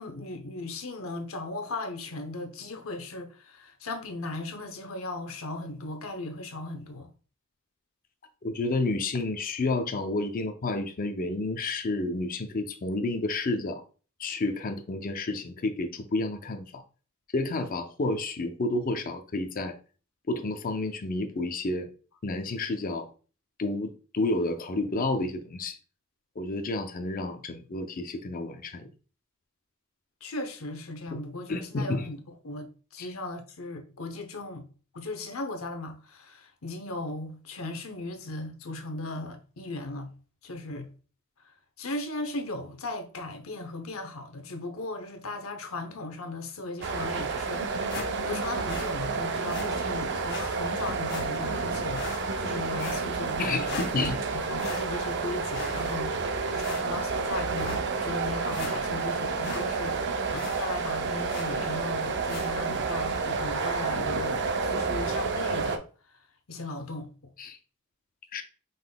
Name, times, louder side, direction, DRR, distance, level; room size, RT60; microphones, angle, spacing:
voice 1, 0.0-7.1 30.2-32.2 32.4-34.7 34.9-40.1 40.4-40.9 41.4-53.8 54.3-67.1, left 2 dB, 75° left, 0.8 m, -37 dB
voice 2, 8.4-13.8 14.2-16.8 17.3-19.7 20.3-21.9 22.2-23.1 23.6-25.8 26.4-28.9 31.5-32.1 33.0-33.1 52.8-52.9 53.4-54.2 67.4-67.6 68.3-68.4, left 2 dB, 40° left, 0.5 m, -30 dB
sound 1, 46.8-65.8, right 4 dB, 55° right, 0.5 m, -30 dB
sound 2, 47.9-48.4 48.7-48.9 49.5-49.7 50.3-50.5 51.1-51.6 52.0-52.5 52.8-53.4 53.7-54.2 54.6-55.2 55.5-56.2 56.6-57.1 57.6-57.8 58.2-58.3 58.5-59.1 59.4-59.7 59.9-60.0 60.4-60.6 61.3-61.6 62.3-62.5, left 4 dB, 60° left, 1.6 m, -40 dB
5.3 x 3.9 x 2.2 m
head